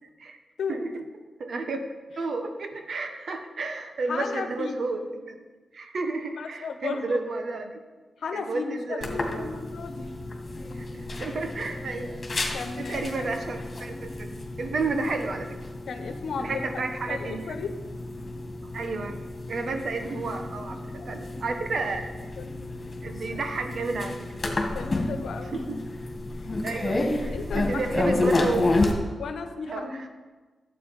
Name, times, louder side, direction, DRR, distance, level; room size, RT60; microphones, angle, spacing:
voice 1, 1.4-1.8 2.2-5.4 5.7-7.8 8.3-9.5 10.8-10.9 11.2-12.5 12.8-15.6 16.4-17.5 18.6-19.2 19.5-22.1 23.0-24.5 25.7-25.8 26.6-28.7 29.7-30.1, right 3 dB, 65° right, 6 dB, 1.3 m, -32 dB
voice 2, 4.1-4.8 5.8-5.9 6.4-7.2 8.2-10.1 12.5-13.3 15.9-16.6 17.1-17.7 21.0-21.2 21.5-21.6 22.4-22.6 24.7-25.6 26.4-26.5 26.9-28.5 29.2-30.0, left 5 dB, 80° left, 7 dB, 1.2 m, -35 dB
sound 1, 9.0-28.9, left 2 dB, 40° left, 2.4 m, -31 dB
12.0 x 8.4 x 5.3 m, 1.3 s
cardioid pair, 65°, 0 cm